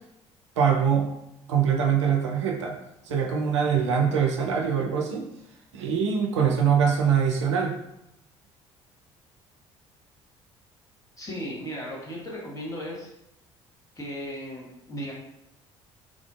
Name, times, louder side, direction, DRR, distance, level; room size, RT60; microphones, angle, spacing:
voice 1, 0.6-1.1 1.5-2.8 3.1-5.3 5.7-7.8, right 7 dB, 75° right, 1 dB, 0.4 m, -23 dB
voice 2, 11.2-13.1 14.0-15.1, equal, 20° left, -4 dB, 1.1 m, -36 dB
3.6 x 2.4 x 2.3 m, 0.84 s
figure-of-eight pair, 50°, 15 cm